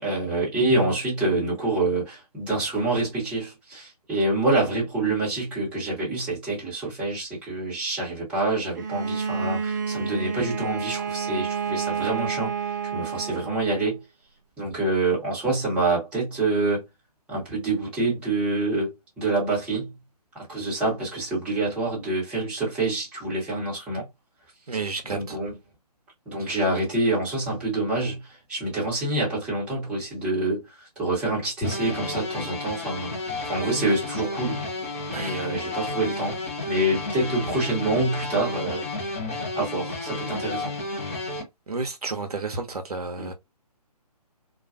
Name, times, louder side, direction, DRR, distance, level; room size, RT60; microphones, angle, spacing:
voice 1, 0.0-12.5 12.9-14.0 14.6-16.8 17.3-19.9 20.3-24.0 25.1-25.5 26.3-28.2 28.5-30.6 31.0-33.1 33.4-34.6 35.1-36.4 36.7-38.8 39.5-40.7 43.2-43.3, right 2 dB, 5° right, 0.9 m, -26 dB
Bowed string instrument, 8.8-13.9, right 6 dB, 30° right, 0.4 m, -30 dB
voice 2, 24.7-25.4 26.4-26.6 35.1-35.4 41.7-43.3, right 3 dB, 70° right, 0.6 m, -31 dB
sound 1, 31.6-41.4, left 2 dB, 20° left, 0.6 m, -32 dB
2.3 x 2.2 x 2.4 m
figure-of-eight pair, 140°, 20 cm